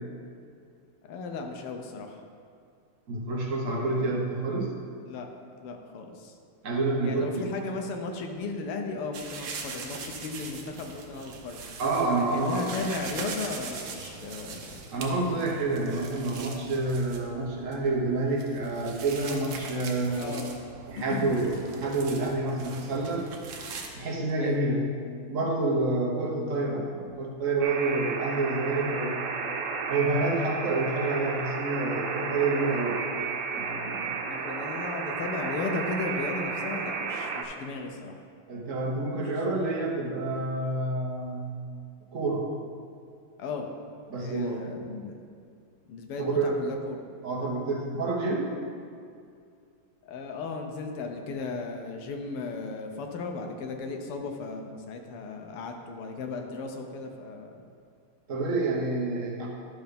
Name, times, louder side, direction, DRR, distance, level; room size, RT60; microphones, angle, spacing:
voice 1, 1.1-2.2 3.7-4.2 5.0-5.3 5.6-6.3 7.0-11.6 12.2-14.8 20.1-20.5 21.1-21.3 24.4-24.6 34.2-38.2 43.4-43.7 44.1-45.2 45.9-47.0 50.0-57.6, left 3 dB, 85° left, 4 dB, 1.7 m, -36 dB
voice 2, 3.1-4.7 6.6-7.5 11.8-12.7 14.9-20.4 20.9-23.2 23.9-24.8 25.3-29.2 29.9-33.0 33.5-34.3 38.5-41.6 42.1-42.5 44.1-44.6 46.2-46.6 47.2-48.5 58.3-59.5, right 2 dB, 45° right, -1 dB, 1.2 m, -28 dB
sound 1, 9.1-23.9, right 4 dB, 65° right, 1.5 m, -41 dB
Alarm, 27.6-37.4, right 5 dB, 85° right, 1.7 m, -33 dB
11.5 x 4.6 x 5.2 m, 2.3 s
omnidirectional pair, 2.4 m